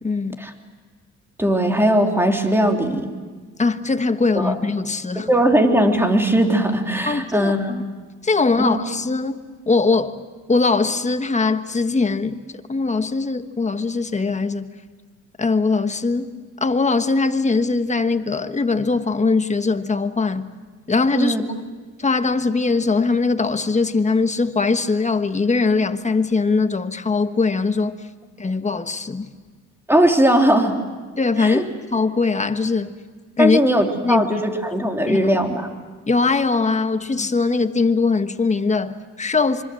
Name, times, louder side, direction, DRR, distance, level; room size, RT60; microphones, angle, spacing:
voice 1, 0.0-0.4 3.6-5.3 7.1-7.8 8.2-9.4 9.7-10.2 10.5-12.4 12.7-14.7 15.4-16.3 16.6-20.5 20.9-21.4 22.0-28.0 28.4-29.3 31.2-31.6 31.9-32.9 33.4-33.6 34.0-34.4 35.1-35.3 36.1-39.6, left 4 dB, 25° left, 1.4 m, -21 dB
voice 2, 1.4-3.1 4.3-4.6 5.1-7.7 8.6-8.8 21.2-21.4 29.9-30.8 31.4-31.6 33.4-35.7, right 1 dB, 10° right, 3.3 m, -19 dB
26.0 x 25.0 x 7.8 m
cardioid pair, 90°, 30 cm